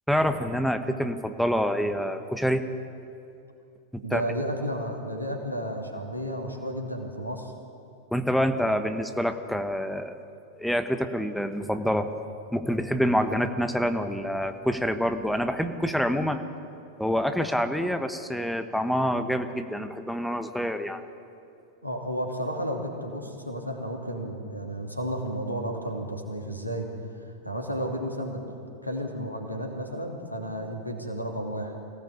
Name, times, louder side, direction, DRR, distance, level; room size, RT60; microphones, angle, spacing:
voice 1, 0.1-2.6 4.1-4.2 8.1-10.2 10.6-12.1 12.5-16.4 17.0-21.0, equal, ahead, 8 dB, 1.2 m, -26 dB
voice 2, 4.0-7.5 21.8-26.9 27.2-28.4 28.8-31.7, equal, 90° left, 2 dB, 2.8 m, -32 dB
24.0 x 17.0 x 8.4 m, 2.6 s
figure-of-eight pair, 90°, 0 cm